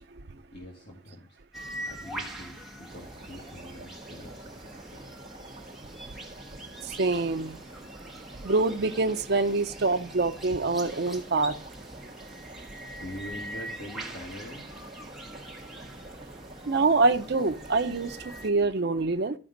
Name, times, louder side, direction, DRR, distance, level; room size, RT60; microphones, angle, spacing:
voice 1, 0.5-1.4 1.9-5.1 12.9-14.6, left 1 dB, 55° left, 1.7 m, -44 dB
sound 1, 1.5-18.5, right 1 dB, ahead, 1.2 m, -43 dB
sound 2, 2.9-18.5, right 2 dB, 25° right, 1.5 m, -48 dB
voice 2, 7.0-7.6 8.4-11.5 16.7-18.2 18.4-19.4, right 3 dB, 55° right, 0.6 m, -25 dB
13.0 x 5.1 x 3.9 m
head